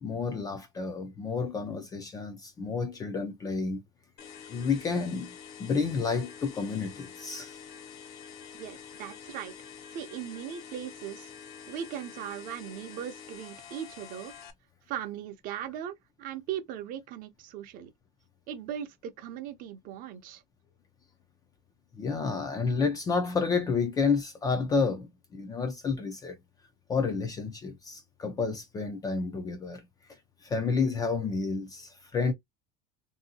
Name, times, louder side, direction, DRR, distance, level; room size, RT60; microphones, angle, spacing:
voice 1, 0.0-3.8 4.5-5.3 5.6-7.6 22.0-26.4 26.9-29.8 30.4-32.3, left 4 dB, 20° left, 0.4 m, -30 dB
sound 1, 4.2-14.5, left 7 dB, 50° left, 0.7 m, -47 dB
voice 2, 8.5-9.5 9.9-11.3 11.7-14.3 14.9-17.9 18.5-20.4, right 9 dB, 45° right, 0.6 m, -39 dB
2.7 x 2.7 x 2.7 m
cardioid pair, 160°, 20 cm